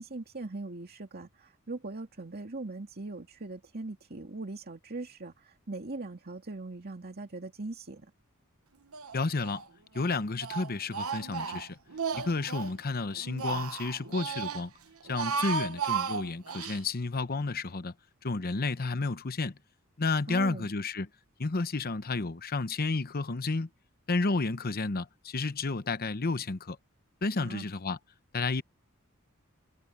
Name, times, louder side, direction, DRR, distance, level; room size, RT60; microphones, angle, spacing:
voice 1, 0.0-8.1 20.3-20.7 27.4-27.7, right 2 dB, 50° right, 2.2 m, -40 dB
Speech, 8.9-9.6 9.9-12.8 13.1-14.6 15.0-16.8, right 6 dB, 80° right, 1.1 m, -34 dB
voice 2, 9.1-9.6 9.9-11.8 12.1-14.7 15.1-17.9 18.2-19.6 20.0-21.1 21.4-23.7 24.1-26.8 27.2-28.0 28.3-28.6, left 3 dB, 45° left, 0.9 m, -31 dB
head